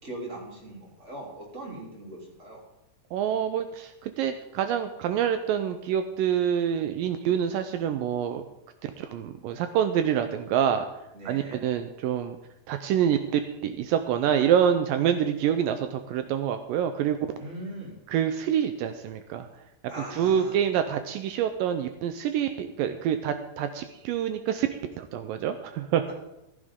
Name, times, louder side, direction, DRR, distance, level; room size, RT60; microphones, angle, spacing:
voice 1, 0.0-2.6 11.1-11.7 17.4-18.0 19.9-20.6, right 1 dB, 20° right, -2 dB, 3.3 m, -40 dB
voice 2, 3.1-8.4 8.8-10.9 11.3-12.4 12.7-17.3 18.1-19.5 20.1-26.1, right 9 dB, 80° right, 8 dB, 2.3 m, -26 dB
15.0 x 14.5 x 3.7 m, 0.90 s
omnidirectional pair, 4.1 m